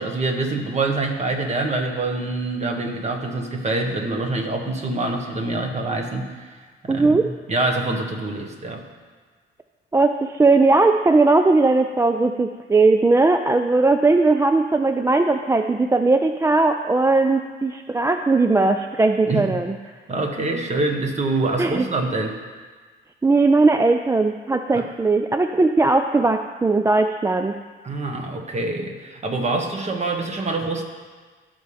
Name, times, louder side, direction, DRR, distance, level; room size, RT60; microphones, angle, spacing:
voice 1, 0.0-6.6 6.8-8.8 19.2-19.6 20.1-22.4 24.7-24.8 27.8-30.8, right 2 dB, 35° right, 3 dB, 1.4 m, -25 dB
voice 2, 6.9-7.3 9.9-19.8 21.6-21.9 23.2-27.6, right 3 dB, 15° right, 7 dB, 0.3 m, -18 dB
16.0 x 5.6 x 3.4 m, 1.5 s
cardioid pair, 90°, 20 cm